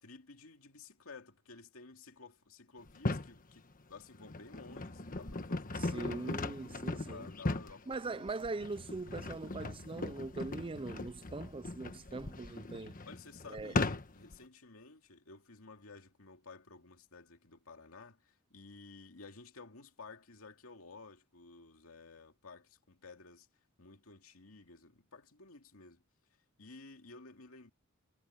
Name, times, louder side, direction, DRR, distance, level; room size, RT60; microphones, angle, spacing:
voice 1, 0.0-6.4 6.9-8.7 13.1-23.5 23.8-26.0 26.6-27.7, left 4 dB, 70° left, 2.6 m, -54 dB
sound 1, 2.9-3.4 4.0-14.4, left 2 dB, 40° left, 1.3 m, -38 dB
voice 2, 5.8-7.3 7.9-13.0 13.5-13.7, right 3 dB, 25° right, 0.5 m, -41 dB
head